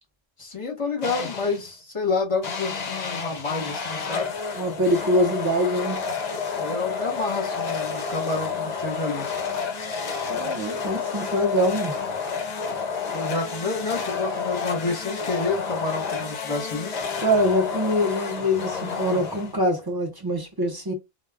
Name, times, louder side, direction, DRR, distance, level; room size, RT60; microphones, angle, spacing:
voice 1, 0.4-4.3 6.5-9.3 13.1-16.9, left 3 dB, 30° left, 1.0 m, -29 dB
sound 1, 1.0-1.7 2.4-19.8, left 5 dB, 50° left, 0.6 m, -30 dB
voice 2, 4.5-6.0 10.3-11.9 17.2-20.9, equal, 25° right, 0.7 m, -24 dB
2.2 x 2.2 x 3.4 m
omnidirectional pair, 1.1 m